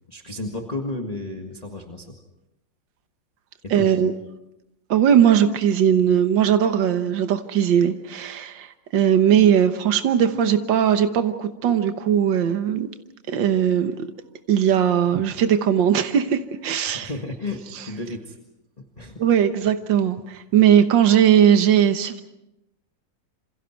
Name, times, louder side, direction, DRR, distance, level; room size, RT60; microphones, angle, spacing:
voice 1, 0.1-2.2 3.6-4.1 16.9-18.4 18.8-19.3, left 2 dB, 20° left, 1 dB, 1.9 m, -33 dB
voice 2, 3.7-4.1 4.9-12.9 13.3-14.1 14.5-17.1 19.2-22.2, right 9 dB, 80° right, 8 dB, 1.9 m, -19 dB
27.5 x 27.5 x 4.6 m, 0.89 s
omnidirectional pair, 2.0 m